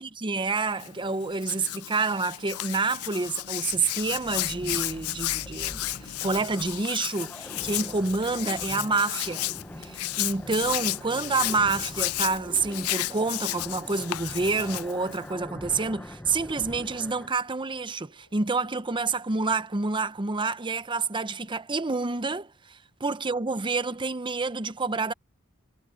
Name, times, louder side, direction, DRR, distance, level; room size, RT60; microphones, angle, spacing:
voice 1, 0.0-9.5 9.8-25.1, right 3 dB, 20° right, 0.7 m, -28 dB
Hands, 0.7-15.3, left 16 dB, 75° left, 0.5 m, -33 dB
sound 1, 3.1-17.3, left 1 dB, 5° left, 0.8 m, -43 dB
sound 2, 17.8-21.5, left 2 dB, 60° left, 7.1 m, -65 dB
head